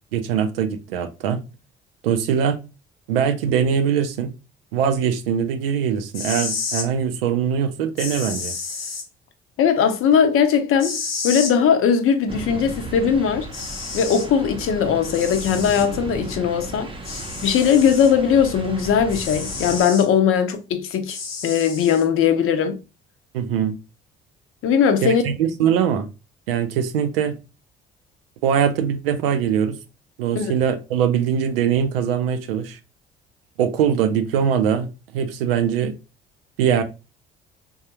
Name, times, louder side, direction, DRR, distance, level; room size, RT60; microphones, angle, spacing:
voice 1, 0.1-1.4 2.0-2.6 3.1-4.3 4.7-8.5 23.3-23.8 25.0-26.1 26.5-27.4 28.4-29.8 30.2-32.8 33.6-36.0 36.6-36.8, right 8 dB, 75° right, 0.5 m, -22 dB
sound 1, 6.0-6.9 8.0-9.0 10.8-11.5 13.0-13.1 13.5-14.3 15.1-15.9 17.0-18.1 19.1-20.1 21.1-22.0, left 4 dB, 90° left, 0.5 m, -30 dB
voice 2, 9.6-11.0 11.2-13.5 13.9-16.9 17.4-21.2 21.4-22.8 24.6-25.2 30.4-30.5, left 7 dB, 50° left, 0.7 m, -19 dB
sound 2, 12.3-19.9, right 2 dB, 20° right, 0.7 m, -35 dB
3.6 x 2.3 x 2.8 m
figure-of-eight pair, 50°, 29 cm